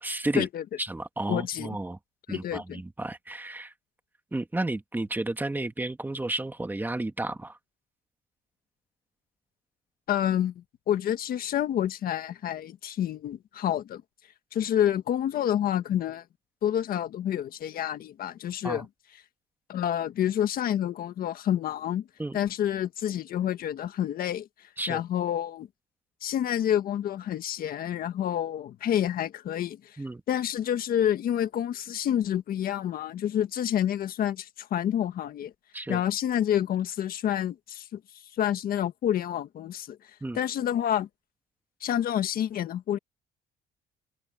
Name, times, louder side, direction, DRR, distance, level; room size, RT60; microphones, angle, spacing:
voice 1, 0.0-0.5 0.8-2.0 2.3-3.7 4.3-7.6 18.6-18.9 22.2-22.4 24.8-25.0 30.0-30.2 35.7-36.0 40.2-40.4, right 2 dB, 10° right, 2.2 m, -32 dB
voice 2, 1.3-1.8 2.3-2.8 10.1-14.0 14.5-16.2 16.6-18.9 19.7-22.1 22.3-25.7 26.2-30.0 30.3-35.5 35.9-38.0 38.4-40.0 40.3-41.1 41.8-43.0, left 10 dB, 60° left, 1.6 m, -28 dB
cardioid pair, 110°, 17 cm